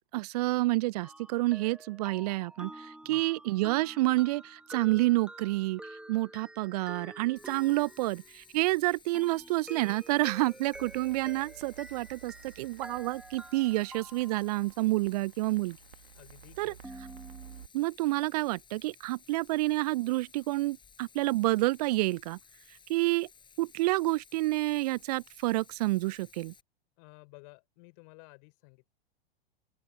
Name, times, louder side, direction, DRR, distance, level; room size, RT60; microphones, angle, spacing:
voice 1, 0.1-5.8 6.1-8.2 8.5-15.8 16.6-16.7 17.7-22.4 22.9-23.3 23.6-26.5, right 20 dB, 45° right, 0.4 m, -29 dB
sound 1, 1.0-8.6 9.1-14.8 16.8-17.6, right 1 dB, 5° right, 1.4 m, -48 dB
Bathtub (filling or washing), 7.3-26.6, left 6 dB, 15° left, 5.0 m, -58 dB
sound 2, 10.7-17.7, right 10 dB, 70° right, 1.5 m, -53 dB
voice 2, 16.1-16.8 27.0-28.9, left 34 dB, 45° left, 6.0 m, -54 dB
open air
figure-of-eight pair, 100°, 29 cm